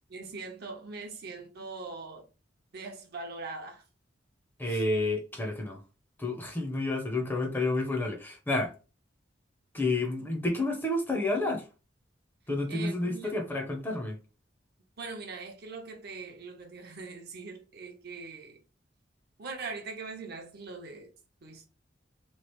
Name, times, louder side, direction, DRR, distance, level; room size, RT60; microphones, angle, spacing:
voice 1, 0.1-2.3 2.7-3.8 4.7-4.8 12.7-13.4 15.0-18.6 19.4-21.1 21.4-21.6, right 3 dB, 60° right, 0.7 m, -41 dB
voice 2, 4.6-5.8 6.2-8.7 9.7-11.6 12.5-14.2, left 2 dB, 10° left, 0.6 m, -30 dB
3.1 x 2.4 x 3.0 m
head